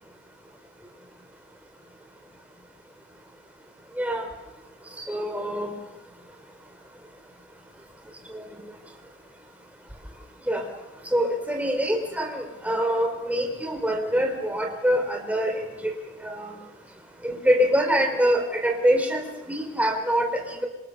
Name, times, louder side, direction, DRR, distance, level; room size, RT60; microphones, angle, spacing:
voice 1, 5.1-5.7 10.5-10.6 11.1-15.9 16.2-16.5 17.2-20.7, equal, 5° right, 2 dB, 4.5 m, -24 dB
26.5 x 26.5 x 6.9 m, 1.0 s
head